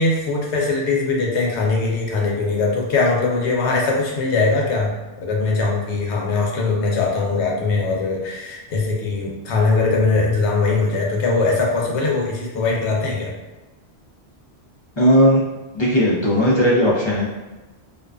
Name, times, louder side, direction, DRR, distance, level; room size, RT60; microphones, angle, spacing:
voice 1, 0.0-4.9 5.2-13.3, left 3 dB, 85° left, -2 dB, 0.9 m, -21 dB
voice 2, 15.0-15.4 15.7-17.2, equal, 35° left, -6 dB, 0.5 m, -16 dB
2.4 x 2.3 x 2.3 m, 1.1 s
omnidirectional pair, 1.1 m